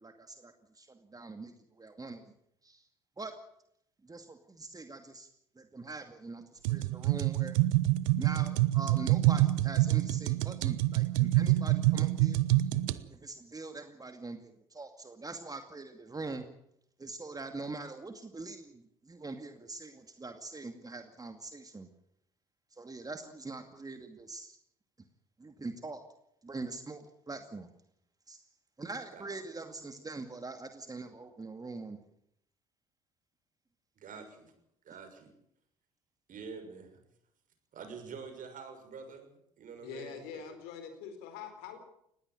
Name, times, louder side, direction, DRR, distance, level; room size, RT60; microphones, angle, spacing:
voice 1, 0.0-2.3 2.6-2.9 3.2-3.3 4.0-5.3 5.6-7.5 8.2-12.7 13.1-16.4 17.0-21.9 22.7-24.6 25.4-26.0 26.4-27.7 28.3-28.4 28.8-32.0, right 3 dB, 20° right, 7 dB, 2.3 m, -43 dB
sound 1, 6.6-13.0, right 16 dB, 80° right, 0.9 m, -26 dB
voice 2, 34.0-34.5 34.8-35.3 36.3-37.0 37.7-39.3 39.6-40.5, right 5 dB, 55° right, 6 dB, 6.5 m, -46 dB
voice 3, 39.8-41.8, left 7 dB, 75° left, 8 dB, 4.4 m, -44 dB
20.0 x 16.5 x 9.2 m, 0.74 s
hypercardioid pair, 55°, 17 cm